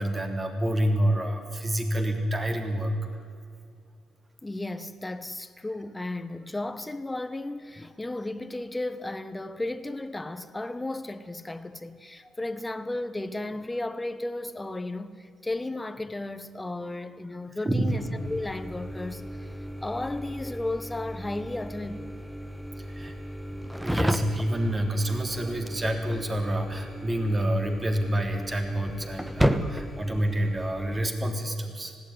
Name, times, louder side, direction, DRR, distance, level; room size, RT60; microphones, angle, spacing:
voice 1, 0.0-2.9 17.6-18.0 22.8-23.1 23.5-32.0, right 1 dB, 25° right, 3.4 m, -28 dB
voice 2, 4.4-22.1 29.6-29.8, left 2 dB, 15° left, 1.3 m, -34 dB
sound 1, 17.9-31.1, equal, 5° right, 1.3 m, -34 dB
19.5 x 16.0 x 9.9 m
cardioid pair, 90°, 0 cm